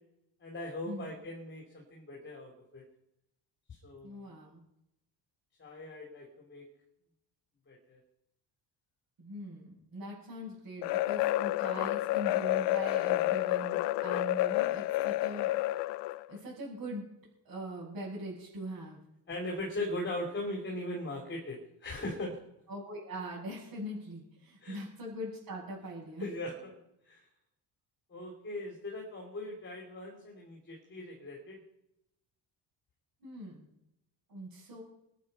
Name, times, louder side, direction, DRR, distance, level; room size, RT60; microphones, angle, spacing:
voice 1, 0.4-2.8 3.8-4.3 5.6-6.6 7.7-8.0 14.1-14.3 19.3-22.4 24.6-24.8 26.2-26.7 27.1-27.2 28.1-31.6, left 1 dB, 25° left, -1 dB, 3.4 m, -39 dB
voice 2, 4.0-4.6 9.2-15.6 16.3-17.0 17.4-19.0 22.7-26.3 33.2-33.7 34.3-34.8, equal, 50° right, -8 dB, 7.3 m, -42 dB
sound 1, 10.8-16.3, left 17 dB, 75° left, 0.6 m, -30 dB
24.0 x 9.2 x 5.6 m, 0.83 s
cardioid pair, 145°, 42 cm